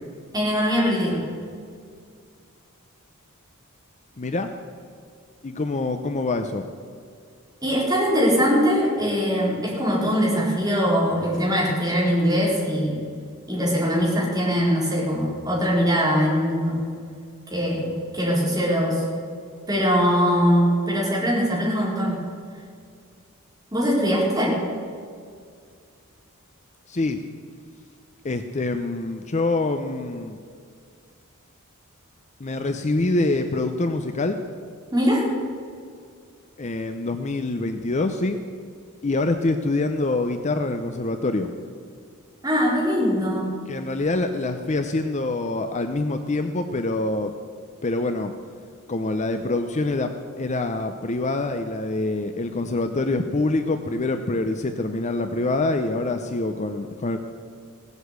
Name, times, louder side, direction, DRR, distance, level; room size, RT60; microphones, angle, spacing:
voice 1, 0.3-1.2 7.6-13.0 13.5-16.8 17.5-19.0 19.7-22.2 23.7-24.6 34.9-35.3 42.4-43.5, equal, 15° right, -4 dB, 4.0 m, -22 dB
voice 2, 4.2-4.5 5.4-6.6 26.9-27.2 28.2-30.4 32.4-34.4 36.6-38.4 39.0-41.5 43.7-47.3 47.8-48.3 48.9-57.2, left 2 dB, 30° left, 7 dB, 0.6 m, -25 dB
17.0 x 8.1 x 8.1 m, 2.2 s
head